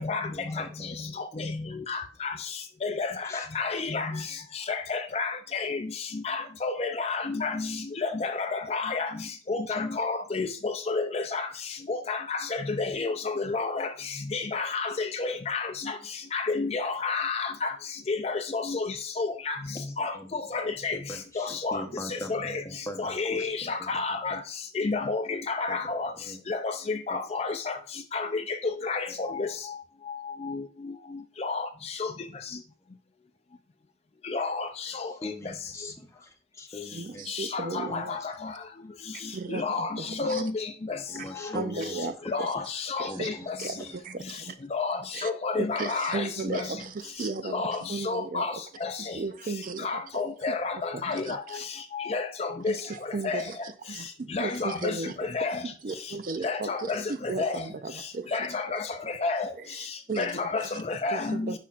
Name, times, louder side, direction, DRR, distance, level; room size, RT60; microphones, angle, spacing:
voice 1, 0.3-1.1 3.2-3.5 4.3-4.4 9.7-9.9 19.8-20.3 20.8-24.0 24.3-24.4 25.7-26.4 27.1-27.2 29.3-29.4 35.0-38.3 41.1-42.3 43.1-43.5 43.8-44.0 60.1-60.3, left 1 dB, 15° left, 0.9 m, -42 dB
voice 2, 1.2-1.5 1.9-2.3 2.8-4.2 4.7-5.8 6.2-7.7 8.0-9.1 9.5-11.5 11.9-13.9 14.3-15.7 16.3-17.7 18.1-19.6 20.0-21.0 21.4-21.8 22.3-22.6 23.0-24.4 24.8-26.1 26.5-27.8 28.1-29.5 30.4-30.6 31.4-31.7 32.0-32.1 34.3-34.7 34.9-35.1 37.3-38.2 39.5-40.7 42.3-43.5 44.7-46.6 47.5-47.8 48.0-48.5 48.8-48.9 49.8-51.4 51.9-52.8 53.2-53.4 54.3-55.6 56.4-57.0 57.4-57.6 58.3-58.8 59.2-59.5 60.2-60.6 60.9-61.5, left 4 dB, 30° left, 0.4 m, -30 dB
voice 3, 36.9-38.2 39.3-40.4 41.1-41.3 41.5-42.1 42.4-42.5 43.0-43.3 43.6-44.5 45.1-45.3 45.5-48.5 49.0-50.0 50.5-50.6 50.9-51.6 52.7-55.3 55.6-58.3 59.6-60.7 61.1-61.6, right 3 dB, 45° right, 0.4 m, -36 dB
9.9 x 5.7 x 2.4 m
head